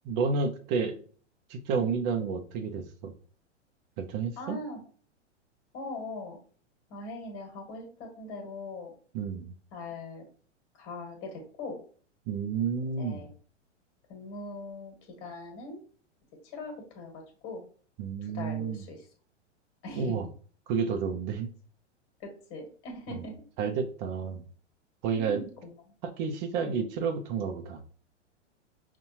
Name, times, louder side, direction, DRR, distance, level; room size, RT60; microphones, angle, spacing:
voice 1, 0.0-0.9 1.5-3.1 4.0-4.6 9.1-9.5 12.3-13.3 18.0-18.9 19.9-20.2 20.7-21.5 23.1-23.2 23.6-24.4 25.0-25.4 26.0-27.8, right 5 dB, 40° right, 7 dB, 0.7 m, -30 dB
voice 2, 1.7-2.0 4.4-4.8 5.7-6.4 6.9-8.9 9.7-10.2 10.8-11.8 13.0-13.3 14.1-14.9 15.2-15.8 16.5-17.6 18.3-19.0 19.8-20.1 22.5-23.3 25.1-25.7 26.6-26.8, left 2 dB, 40° left, 2 dB, 1.6 m, -41 dB
5.4 x 2.5 x 2.8 m, 0.44 s
hypercardioid pair, 105°, 36 cm